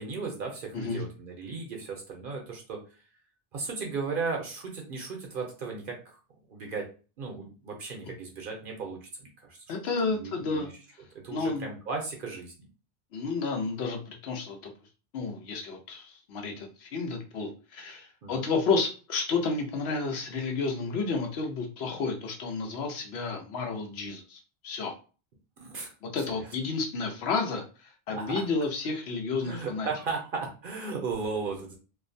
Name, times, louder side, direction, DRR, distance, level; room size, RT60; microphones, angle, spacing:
voice 1, 0.0-2.8 3.5-6.2 6.5-6.9 7.2-9.8 10.1-10.7 11.2-12.7 18.2-18.5 25.6-25.9 28.1-28.4 29.4-31.8, right 4 dB, 60° right, 1 dB, 0.7 m, -36 dB
voice 2, 9.7-10.7 11.3-11.7 13.1-14.7 15.1-24.9 26.0-29.9, left 4 dB, 85° left, 3 dB, 0.9 m, -31 dB
2.4 x 2.1 x 2.5 m, 0.35 s
omnidirectional pair, 1.0 m